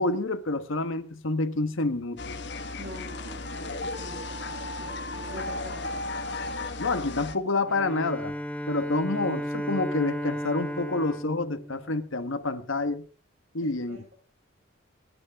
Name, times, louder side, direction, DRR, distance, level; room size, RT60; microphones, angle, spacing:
voice 1, 0.0-2.4 6.8-8.3 8.7-13.0 13.5-14.0, left 2 dB, 70° left, 1.5 m, -28 dB
sound 1, 2.2-7.4, left 2 dB, 55° left, 1.4 m, -35 dB
voice 2, 2.8-6.0 13.9-14.0, equal, 45° right, 5.6 m, -44 dB
Bowed string instrument, 7.7-12.5, equal, 5° left, 1.2 m, -34 dB
26.0 x 9.9 x 3.6 m
head